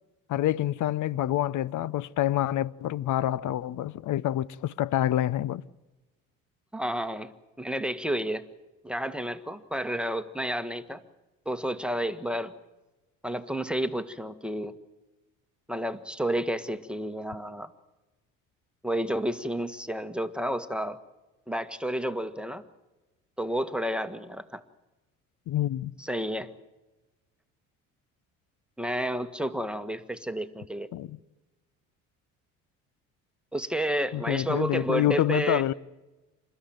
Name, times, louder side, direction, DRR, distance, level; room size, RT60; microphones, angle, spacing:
voice 1, 0.3-5.6 25.5-25.9 30.9-31.2 34.1-35.7, left 12 dB, 50° left, 0.8 m, -27 dB
voice 2, 6.7-7.3 7.6-8.4 8.8-11.0 11.4-12.5 13.2-14.7 15.7-17.7 18.8-21.0 21.5-22.6 23.4-24.6 26.0-26.5 28.8-30.9 33.5-35.7, right 1 dB, 5° right, 1.5 m, -31 dB
28.0 x 13.5 x 9.2 m
hypercardioid pair, 60°, 38 cm